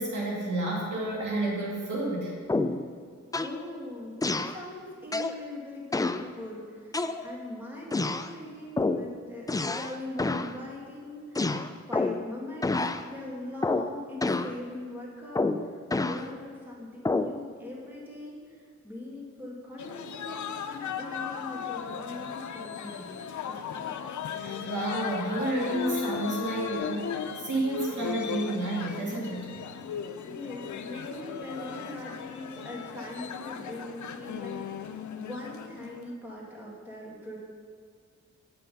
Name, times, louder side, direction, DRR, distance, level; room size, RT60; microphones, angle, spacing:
voice 1, 0.0-2.3 24.4-27.1 27.4-29.5, right 1 dB, 85° right, -4 dB, 2.1 m, -30 dB
sound 1, 2.5-2.9 3.3-3.6 4.2-4.6 5.1-5.4 5.9-6.3 6.9-7.5 7.9-8.3 8.8-9.1 9.5-9.9 10.2-10.5 11.3-12.3 12.6-13.0 13.6-13.9 14.2-14.5 15.3-16.2 17.0-17.4, left 3 dB, 15° left, 0.3 m, -28 dB
voice 2, 3.4-11.5 11.8-15.5 16.0-18.4 18.8-23.2 23.4-23.9 30.2-34.9 35.1-37.4, left 1 dB, 5° right, -4 dB, 2.1 m, -41 dB
sound 2, 19.8-36.1, left 7 dB, 85° left, 0.5 m, -37 dB
8.5 x 5.8 x 5.4 m, 2.1 s
wide cardioid pair, 95°, 29 cm